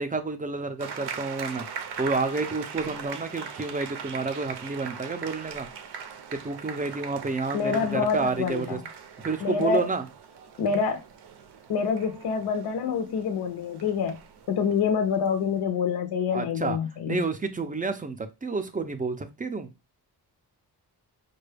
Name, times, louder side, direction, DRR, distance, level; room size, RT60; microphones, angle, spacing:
voice 1, 0.0-1.7 2.0-5.7 6.3-8.8 9.2-10.0 16.3-16.8 17.1-19.7, right 3 dB, 20° right, 0.4 m, -30 dB
sound 1, 0.8-15.7, right 6 dB, 75° right, 0.6 m, -41 dB
voice 2, 7.5-8.8 9.4-9.9 10.6-11.0 11.7-14.2 14.5-17.2, left 6 dB, 70° left, 0.5 m, -26 dB
4.8 x 2.2 x 3.2 m
wide cardioid pair, 160°, 40 cm